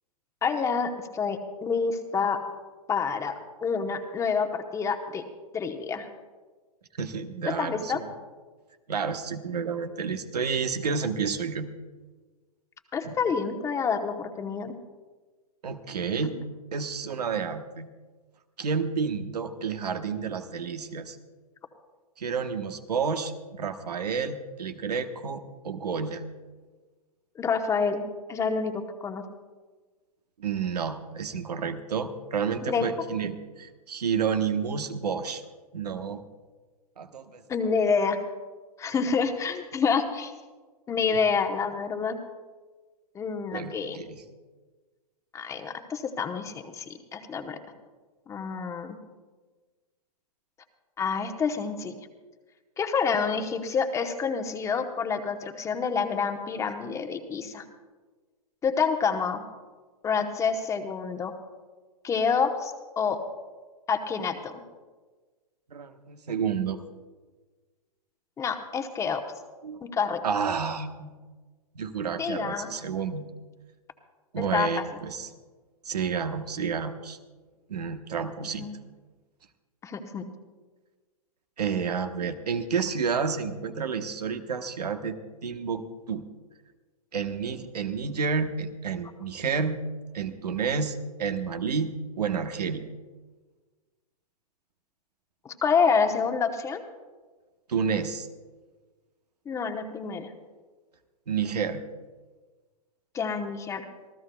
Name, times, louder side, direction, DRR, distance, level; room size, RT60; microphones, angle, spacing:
voice 1, 0.4-2.4 2.9-3.3 3.6-5.2 5.5-6.1 7.5-8.0 12.9-14.8 27.4-28.0 28.3-29.2 32.7-32.9 37.5-38.2 38.8-40.3 40.9-42.2 43.1-44.0 45.3-46.8 47.1-47.6 48.3-49.0 51.0-51.9 52.8-57.6 58.6-59.4 60.0-61.3 62.0-63.2 63.9-64.5 68.4-69.2 69.8-70.2 72.2-72.7 74.5-74.8 78.6-78.8 79.8-80.3 95.4-96.8 99.5-100.3 103.1-103.9, left 5 dB, 15° left, 6 dB, 1.0 m, -28 dB
voice 2, 7.0-8.1 8.9-11.7 13.0-13.2 15.6-16.4 16.7-17.9 18.6-21.2 22.2-26.2 30.4-35.4 35.7-36.2 37.0-37.4 43.5-44.2 65.7-66.8 69.6-69.8 70.2-71.1 71.7-73.3 74.3-75.3 75.8-77.2 77.7-78.7 81.6-85.8 86.1-86.2 87.1-89.8 90.1-92.9 97.7-98.3 101.3-101.8, right 6 dB, 85° right, 8 dB, 1.2 m, -30 dB
26.5 x 14.5 x 2.3 m, 1.4 s
hypercardioid pair, 130°, 20 cm